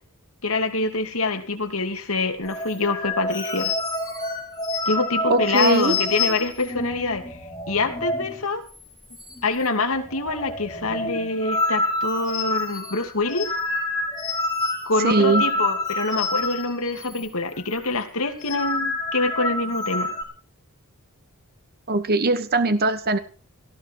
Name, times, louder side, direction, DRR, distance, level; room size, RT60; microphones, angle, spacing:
voice 1, 0.4-3.7 4.9-7.4 7.7-8.6 9.4-13.5 14.9-20.1, left 3 dB, 70° left, 6 dB, 2.8 m, -25 dB
sound 1, 2.4-8.4 8.7-8.8 9.1-9.7 9.9-17.3 17.5-17.8 18.2-20.2, left 2 dB, 15° left, 5.5 m, -28 dB
voice 2, 5.3-5.9 15.0-15.4 21.9-23.2, right 2 dB, 45° right, 11 dB, 1.2 m, -20 dB
18.5 x 14.5 x 4.8 m, 0.38 s
head